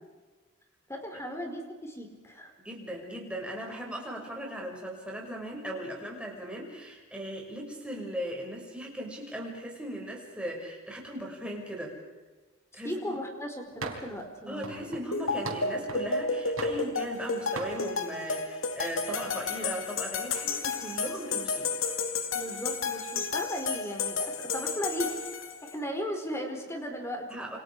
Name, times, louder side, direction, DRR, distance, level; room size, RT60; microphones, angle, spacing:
voice 1, 0.9-2.5 12.8-14.9 22.3-25.2 25.6-27.4, equal, 15° left, 3 dB, 4.8 m, -36 dB
voice 2, 2.6-12.0 12.7-13.2 14.5-21.7 27.3-27.6, equal, 5° right, -1 dB, 6.4 m, -38 dB
sound 1, 13.8-14.2 14.6-16.1 16.6-17.3 17.6-17.8, right 3 dB, 85° right, 4.1 m, -39 dB
sound 2, 15.1-25.7, left 4 dB, 75° left, 2.6 m, -32 dB
29.0 x 27.0 x 5.0 m, 1.3 s
head